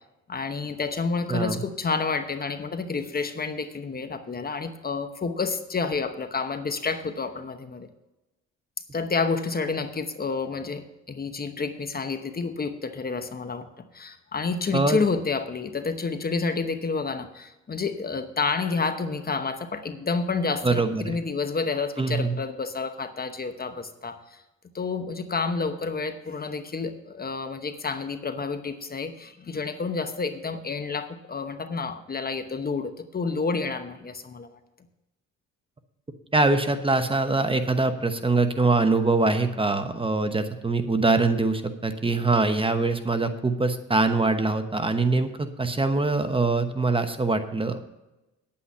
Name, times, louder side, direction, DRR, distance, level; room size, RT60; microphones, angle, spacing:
voice 1, 0.3-7.9 8.9-13.7 13.9-24.4 24.7-34.5, left 4 dB, 30° left, 9 dB, 1.0 m, -29 dB
voice 2, 1.3-1.6 14.7-15.0 20.6-21.1 22.0-22.4 36.3-47.8, right 3 dB, 20° right, 8 dB, 1.0 m, -23 dB
9.9 x 8.6 x 5.5 m, 0.98 s
cardioid pair, 90°, 30 cm